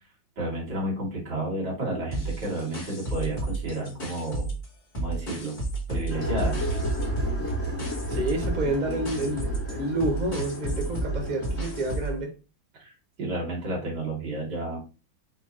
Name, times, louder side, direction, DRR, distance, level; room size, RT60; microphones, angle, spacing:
voice 1, 0.4-4.5 5.0-5.6 5.9-6.6 12.8-12.9 13.2-14.8, right 2 dB, 55° right, 2.2 m, -31 dB
sound 1, 2.1-4.7 4.9-12.2, right 2 dB, 30° left, 1.0 m, -32 dB
sound 2, 6.1-12.0, equal, 15° left, 0.6 m, -32 dB
voice 2, 8.1-12.3, right 2 dB, 85° right, 0.4 m, -29 dB
4.5 x 2.2 x 3.6 m
omnidirectional pair, 2.2 m